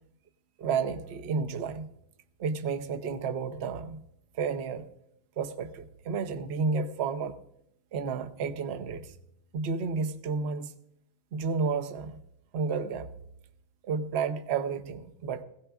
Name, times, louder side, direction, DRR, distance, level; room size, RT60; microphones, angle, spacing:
voice 1, 0.6-1.9 2.4-4.0 4.3-4.9 5.4-7.3 7.9-9.1 9.5-10.7 11.3-12.2 12.5-13.1 13.8-15.4, right 5 dB, 50° right, 7 dB, 0.9 m, -31 dB
21.0 x 16.5 x 2.4 m, 0.75 s
omnidirectional pair, 1.7 m